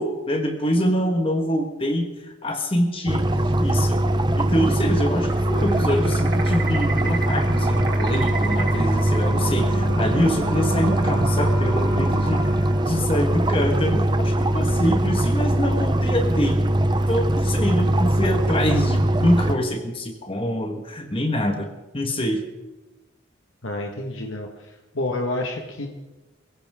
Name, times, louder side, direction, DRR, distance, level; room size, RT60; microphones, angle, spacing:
voice 1, 0.0-2.1 2.4-3.3 3.6-4.0 4.4-12.5 12.8-16.6 17.1-21.7 21.9-22.4, equal, 25° left, 4 dB, 1.5 m, -25 dB
sound 1, 3.1-19.6, right 1 dB, 20° right, 0.7 m, -21 dB
sound 2, 5.2-13.7, right 3 dB, 85° right, 4.2 m, -34 dB
Wind instrument woodwind instrument, 9.3-13.1, right 2 dB, 65° right, 1.4 m, -35 dB
voice 2, 23.6-25.9, left 2 dB, 80° left, 2 dB, 1.6 m, -29 dB
23.0 x 16.0 x 3.7 m, 1.1 s
head